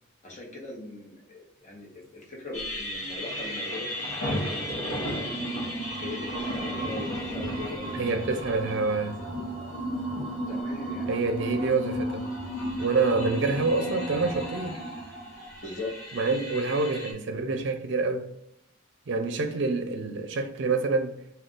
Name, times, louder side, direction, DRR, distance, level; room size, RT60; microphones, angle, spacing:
voice 1, 0.2-5.5 6.0-8.4 10.5-11.2 15.6-15.9, left 2 dB, 40° left, 0.9 m, -40 dB
sound 1, 2.5-17.1, equal, 15° left, 1.2 m, -35 dB
sound 2, 3.0-10.6, equal, 70° left, 0.8 m, -37 dB
voice 2, 7.9-9.2 11.1-12.3 12.8-14.8 16.1-18.3 19.1-21.2, right 3 dB, 65° right, 0.5 m, -27 dB
2.4 x 2.3 x 3.7 m
head